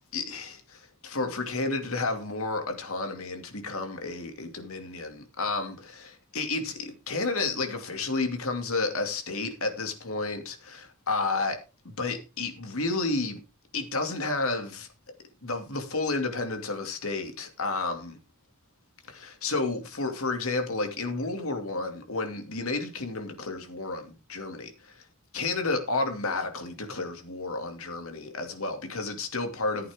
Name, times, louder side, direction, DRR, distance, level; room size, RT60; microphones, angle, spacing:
voice 1, 0.1-11.6 11.8-13.4 13.7-14.9 15.4-18.2 19.1-25.0 25.3-29.9, left 3 dB, 75° left, 2.5 m, -31 dB
14.5 x 8.5 x 3.6 m
head